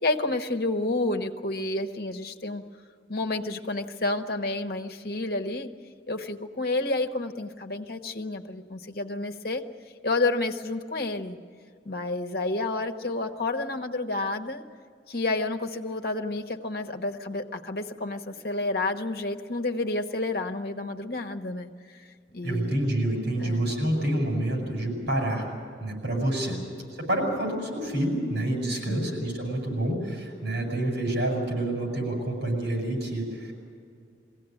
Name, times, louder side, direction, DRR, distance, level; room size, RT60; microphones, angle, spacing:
voice 1, 0.0-2.6 3.1-5.7 6.1-9.6 10.0-11.4 11.8-14.6 15.1-22.0 22.3-22.8 23.4-23.6 26.5-26.6 28.9-29.1, left 2 dB, 55° left, 6 dB, 1.2 m, -30 dB
voice 2, 22.4-25.5 25.8-26.6 26.9-33.5, right 1 dB, 75° right, 1 dB, 7.7 m, -28 dB
22.5 x 17.0 x 9.1 m, 2.3 s
head